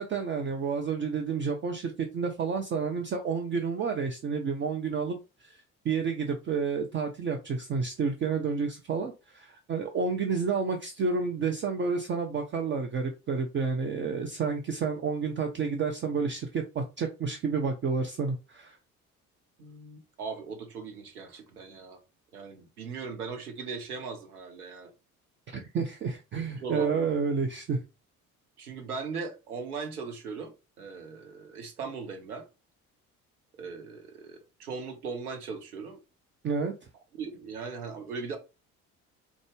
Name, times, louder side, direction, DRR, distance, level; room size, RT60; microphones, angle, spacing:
voice 1, 0.0-18.8 25.5-27.8 36.4-36.7, right 5 dB, 25° right, 0.5 m, -30 dB
voice 2, 19.6-22.0 22.3-24.9 26.6-27.1 28.6-32.5 33.6-36.0 37.2-38.4, right 5 dB, 80° right, 0.7 m, -38 dB
3.8 x 2.3 x 3.2 m
figure-of-eight pair, 50°, 44 cm